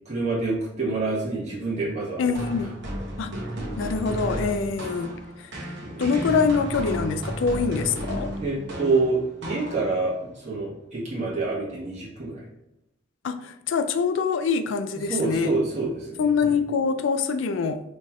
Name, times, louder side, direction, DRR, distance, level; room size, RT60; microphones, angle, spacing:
voice 1, 0.1-2.3 5.8-6.1 8.4-12.4 15.1-16.5, right 3 dB, 35° right, -7 dB, 1.2 m, -27 dB
voice 2, 2.2-2.7 3.2-3.3 3.8-5.2 6.0-8.3 13.2-15.5 16.2-17.8, left 5 dB, 70° left, 9 dB, 0.3 m, -24 dB
sound 1, 2.3-10.2, right 1 dB, 65° right, 0.9 m, -33 dB
4.2 x 3.1 x 2.4 m, 0.87 s
head